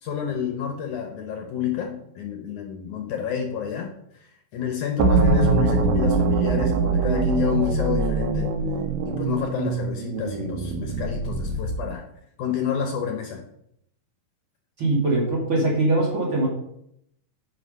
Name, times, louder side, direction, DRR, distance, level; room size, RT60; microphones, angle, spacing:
voice 1, 0.0-3.9 4.2-8.5 9.0-12.0 12.4-13.4, left 8 dB, 70° left, 3 dB, 2.2 m, -29 dB
sound 1, 5.0-11.9, right 4 dB, 85° right, 2.9 m, -23 dB
voice 2, 14.8-16.5, right 2 dB, 40° right, -4 dB, 2.9 m, -22 dB
9.8 x 6.0 x 5.5 m, 0.76 s
omnidirectional pair, 4.2 m